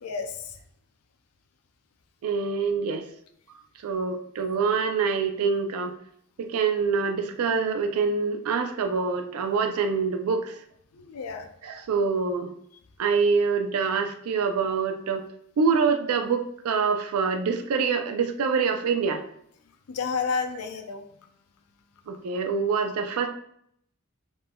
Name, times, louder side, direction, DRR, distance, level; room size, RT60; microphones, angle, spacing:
voice 1, 0.0-0.3 10.9-11.5 19.9-21.0, left 5 dB, 85° left, 7 dB, 0.4 m, -30 dB
voice 2, 2.2-3.0 3.8-5.9 6.4-10.6 11.6-12.5 13.0-15.3 15.6-19.2 22.1-23.3, right 5 dB, 85° right, 7 dB, 0.4 m, -25 dB
2.5 x 2.2 x 3.4 m, 0.69 s
head